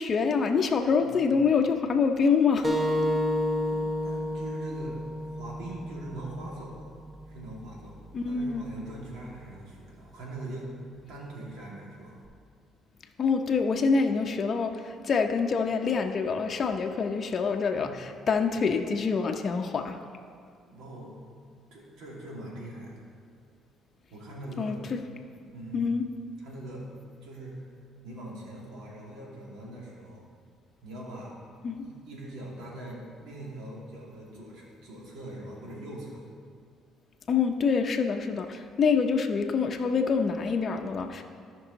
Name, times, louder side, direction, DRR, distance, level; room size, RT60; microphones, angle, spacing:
voice 1, 0.0-2.7 8.1-8.7 13.2-20.0 24.6-25.0 25.7-26.0 31.6-31.8 37.3-41.2, left 5 dB, 40° left, 3 dB, 0.6 m, -26 dB
voice 2, 1.0-1.3 3.7-6.9 7.3-8.0 8.3-10.7 11.1-12.2 17.7-18.0 20.7-21.1 21.7-23.0 24.1-24.8 25.2-25.9 26.4-26.8 27.2-27.6 28.0-30.2 30.8-31.4 31.8-36.3, right 1 dB, 85° right, -3 dB, 2.4 m, -42 dB
sound 1, 2.6-7.8, left 1 dB, 15° right, 1.1 m, -31 dB
13.5 x 5.4 x 4.0 m, 2.2 s
cardioid pair, 100°, 0 cm